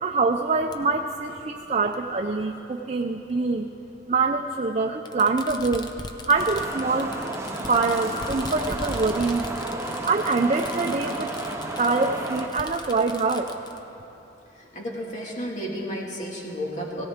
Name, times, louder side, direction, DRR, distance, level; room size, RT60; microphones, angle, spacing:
voice 1, 0.0-3.7 4.1-5.9 6.3-7.1 7.5-9.5 10.0-11.3 11.8-13.5, right 3 dB, 40° right, 3 dB, 0.5 m, -24 dB
Fireworks, 0.7-0.8 1.9-2.0 3.3-3.4 5.0-13.8, left 2 dB, 25° left, 0.7 m, -39 dB
sound 1, 6.4-12.5, right 2 dB, 15° right, 0.9 m, -32 dB
voice 2, 14.5-17.0, equal, 40° left, -2 dB, 2.1 m, -32 dB
18.0 x 17.0 x 3.6 m, 3.0 s
head